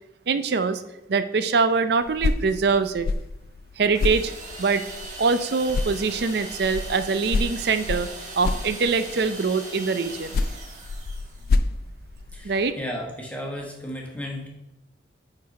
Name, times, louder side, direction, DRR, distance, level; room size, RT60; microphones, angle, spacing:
voice 1, 0.3-0.8 1.1-3.1 3.8-4.3 4.6-4.8 5.2-8.1 8.4-10.4 12.4-12.8, right 4 dB, 60° right, 11 dB, 0.5 m, -23 dB
sound 1, 2.0-5.4 5.7-9.2 10.1-12.7, left 3 dB, 55° left, 0.3 m, -29 dB
sound 2, 3.9-11.6, right 3 dB, 45° right, 1.2 m, -39 dB
voice 2, 12.3-14.5, equal, 10° left, -2 dB, 1.2 m, -34 dB
8.8 x 3.9 x 4.2 m, 0.89 s
head